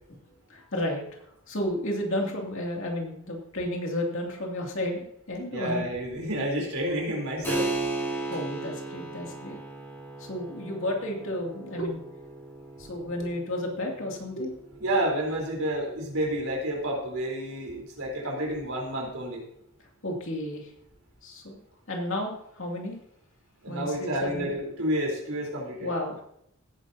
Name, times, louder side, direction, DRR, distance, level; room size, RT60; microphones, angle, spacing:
voice 1, 0.5-1.0 1.5-5.0 5.3-5.9 8.3-9.6 10.2-12.0 12.8-14.6 20.0-20.7 21.2-21.6 21.9-23.0 23.7-24.5 25.8-26.2, left 1 dB, 65° left, 0 dB, 2.6 m, -32 dB
voice 2, 5.5-7.7 14.8-19.4 23.6-25.9, right 1 dB, 80° right, -1 dB, 3.9 m, -30 dB
Keyboard (musical), 7.4-17.7, right 2 dB, 10° left, 3.1 m, -37 dB
16.5 x 9.7 x 2.8 m, 0.73 s
head